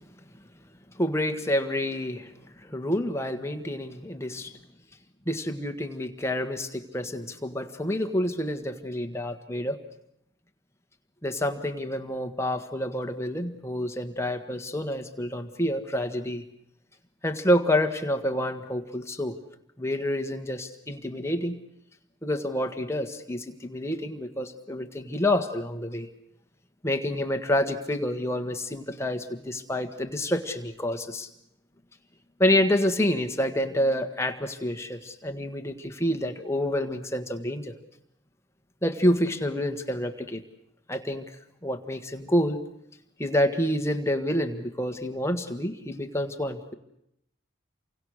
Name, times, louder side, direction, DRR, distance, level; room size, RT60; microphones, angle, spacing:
voice 1, 1.0-2.3 2.6-4.5 5.2-9.8 11.2-16.4 17.2-19.4 19.8-21.6 22.2-26.1 26.8-31.3 32.4-37.8 38.8-40.4 40.9-42.6 43.2-46.7, left 1 dB, 15° left, 7 dB, 1.5 m, -28 dB
29.5 x 24.5 x 6.5 m, 0.78 s
head